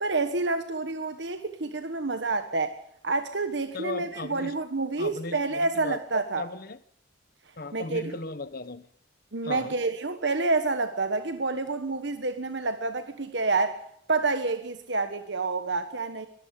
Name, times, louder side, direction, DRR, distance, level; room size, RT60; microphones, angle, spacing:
voice 1, 0.0-2.8 3.0-6.5 7.7-8.1 9.3-13.8 14.1-16.3, right 3 dB, 70° right, 1.3 m, -28 dB
voice 2, 3.7-4.5 5.0-6.0 6.4-6.8 7.6-8.9 9.4-9.7, left 3 dB, 50° left, 1.0 m, -36 dB
23.0 x 13.5 x 8.5 m
head